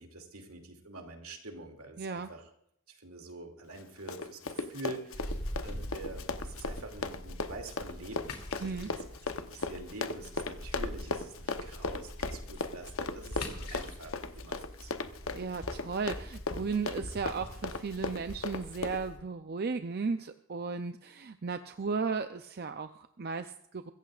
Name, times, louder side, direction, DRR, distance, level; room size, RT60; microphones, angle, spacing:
voice 1, 0.0-2.5 2.9-5.3 5.6-9.0 9.3-15.3, right 2 dB, 80° right, 3 dB, 2.6 m, -46 dB
voice 2, 2.0-2.3 8.6-8.9 15.3-23.9, right 4 dB, 45° right, 8 dB, 0.5 m, -35 dB
Run, 3.7-19.0, left 3 dB, 65° left, 0.9 m, -37 dB
sound 1, 5.1-19.2, left 1 dB, 80° left, 2.8 m, -43 dB
24.5 x 15.0 x 2.5 m, 0.71 s
head